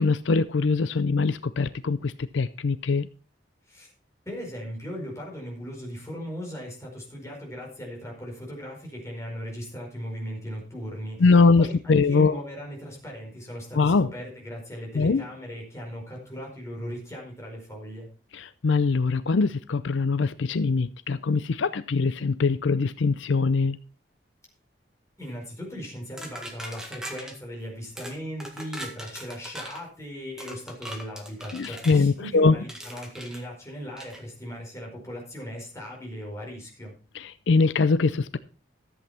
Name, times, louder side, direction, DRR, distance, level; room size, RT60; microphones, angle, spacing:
voice 1, 0.0-3.1 11.2-12.4 13.7-14.1 14.9-15.2 18.3-23.8 31.5-32.6 37.1-38.4, left 4 dB, 75° left, 14 dB, 0.5 m, -22 dB
voice 2, 4.2-18.1 25.2-36.9, equal, 15° left, -1 dB, 4.8 m, -38 dB
sound 1, 26.2-27.4 28.0-28.2 28.4-29.8 30.4-32.0 32.7-33.4 34.0-34.2, right 1 dB, 5° right, 1.8 m, -40 dB
13.5 x 8.1 x 4.3 m, 0.36 s
head